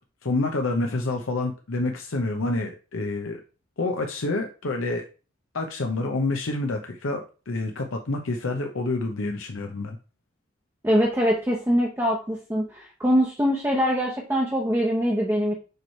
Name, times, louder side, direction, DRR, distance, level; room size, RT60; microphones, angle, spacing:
voice 1, 0.2-3.4 3.8-5.0 5.5-10.0, left 2 dB, 90° left, 3 dB, 0.8 m, -28 dB
voice 2, 10.8-15.6, equal, 10° right, -1 dB, 0.8 m, -23 dB
6.7 x 3.2 x 4.5 m, 0.34 s
head